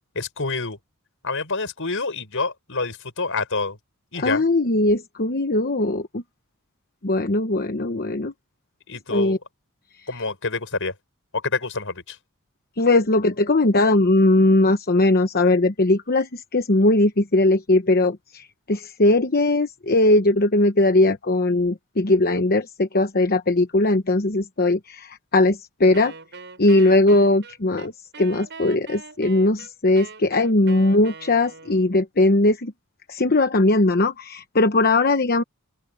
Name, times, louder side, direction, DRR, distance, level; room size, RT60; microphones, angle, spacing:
voice 1, 0.1-0.8 1.2-3.8 4.1-4.4 8.9-9.4 10.1-10.9 11.3-12.2, left 3 dB, 60° left, 6.4 m, -27 dB
voice 2, 4.2-6.2 7.0-8.3 9.1-9.4 12.8-26.1 26.6-27.9 28.2-32.7 33.1-35.4, left 2 dB, 45° left, 1.0 m, -19 dB
Wind instrument woodwind instrument, 25.9-32.0, right 4 dB, 50° right, 7.6 m, -42 dB
open air
head